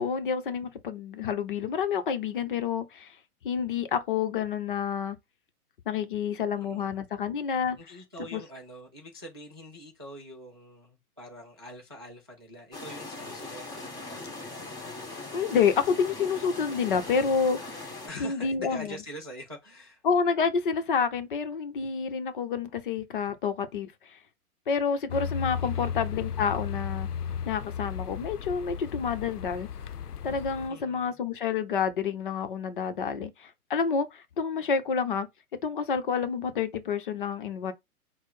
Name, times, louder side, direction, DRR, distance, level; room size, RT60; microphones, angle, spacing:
voice 1, 0.0-3.2 3.4-5.2 5.9-7.8 8.3-8.4 15.3-17.9 18.2-19.0 20.0-24.2 24.7-27.1 27.5-29.7 30.2-35.3 35.6-37.7, left 6 dB, 35° left, 0.6 m, -29 dB
voice 2, 6.6-6.9 7.8-14.7 18.1-20.0 25.5-26.0 30.7-31.2, equal, 20° right, 0.3 m, -45 dB
sound 1, 12.7-18.1, left 2 dB, 10° left, 1.1 m, -40 dB
sound 2, 25.1-30.7, left 7 dB, 80° left, 0.5 m, -35 dB
6.0 x 2.0 x 4.1 m
figure-of-eight pair, 120°, 45 cm